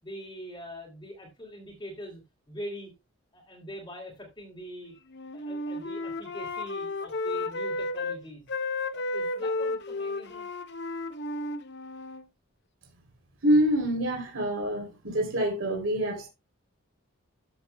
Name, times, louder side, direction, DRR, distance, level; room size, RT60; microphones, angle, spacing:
voice 1, 0.0-2.2 2.5-2.9 3.3-4.9 5.3-8.5 8.9-10.5, equal, 20° left, 3.0 m, -43 dB
Wind instrument woodwind instrument, 5.1-8.2 8.5-12.3, left 2 dB, 50° left, 0.7 m, -33 dB
voice 2, 13.4-16.3, right 1 dB, 70° right, 3.3 m, -26 dB
14.0 x 7.7 x 2.3 m
head